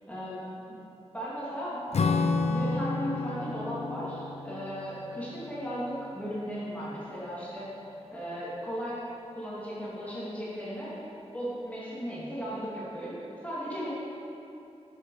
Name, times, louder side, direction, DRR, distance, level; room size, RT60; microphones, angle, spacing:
voice 1, 0.1-0.4 0.7-0.8 1.1-2.0 2.4-7.7 8.1-9.0 9.3-10.9 11.3-13.2 13.4-13.9, equal, 10° left, -9 dB, 2.4 m, -36 dB
Acoustic guitar / Strum, 1.9-6.7, left 3 dB, 75° left, 0.5 m, -31 dB
11.0 x 6.7 x 4.8 m, 2.7 s
wide cardioid pair, 110°, 11 cm